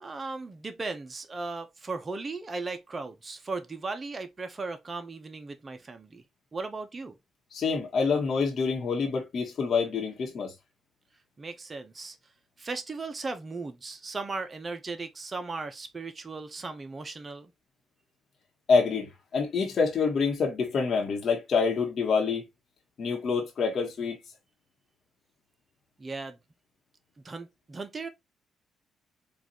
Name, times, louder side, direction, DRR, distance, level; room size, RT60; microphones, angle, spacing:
voice 1, 0.0-6.2 6.5-7.2 11.4-12.2 12.6-17.5 26.0-26.4 27.2-28.1, right 3 dB, 30° right, 0.7 m, -37 dB
voice 2, 7.5-10.5 18.7-22.4 23.0-24.2, left 5 dB, 55° left, 1.1 m, -26 dB
4.0 x 2.5 x 2.9 m
cardioid pair, 90°, 0 cm